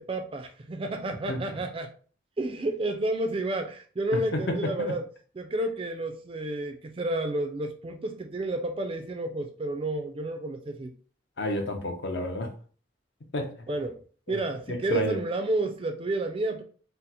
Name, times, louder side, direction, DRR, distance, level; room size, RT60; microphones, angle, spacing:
voice 1, 0.0-1.9 2.4-5.0 5.3-10.9 13.7-14.0 14.3-16.6, right 2 dB, 30° right, 0.3 m, -30 dB
voice 2, 4.3-4.9 11.4-12.5 13.3-13.5 14.3-14.4 14.7-15.2, left 1 dB, 60° left, 0.6 m, -30 dB
4.0 x 2.0 x 2.7 m
head